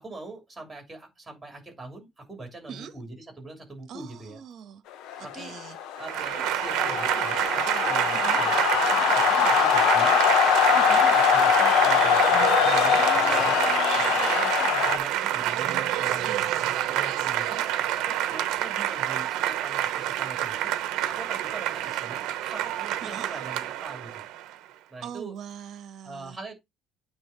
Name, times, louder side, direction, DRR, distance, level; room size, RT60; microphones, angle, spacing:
voice 1, 0.0-4.4 5.2-5.5 6.0-8.5 8.9-10.2 10.7-12.2 12.6-16.4 16.7-17.7 18.1-20.7 21.1-24.2 24.9-25.4 26.0-26.5, right 2 dB, 10° right, 2.9 m, -42 dB
voice 2, 3.9-4.8 5.2-5.8 8.1-8.4 10.7-11.0 13.0-14.3 16.2-16.9 23.0-23.3 25.0-26.4, right 8 dB, 45° right, 1.1 m, -42 dB
sound 1, 5.1-15.0, left 8 dB, 65° left, 0.7 m, -23 dB
Applause / Crowd, 6.0-24.5, right 12 dB, 70° right, 0.8 m, -27 dB
8.8 x 3.5 x 4.4 m
cardioid pair, 175°, 0 cm